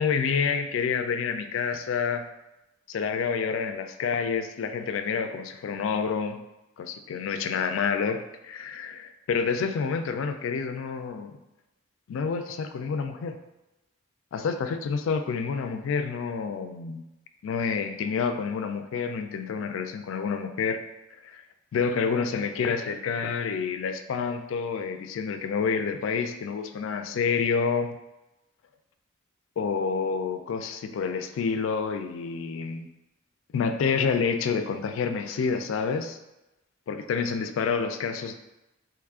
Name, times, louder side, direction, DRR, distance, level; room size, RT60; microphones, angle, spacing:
voice 1, 0.0-2.2 2.9-6.4 6.8-11.3 12.1-13.4 14.3-17.0 17.4-20.8 21.2-21.4 21.7-27.9 29.6-32.9 33.5-36.2 36.9-38.3, left 5 dB, 70° left, 8 dB, 0.3 m, -28 dB
3.1 x 2.4 x 3.5 m, 0.97 s
head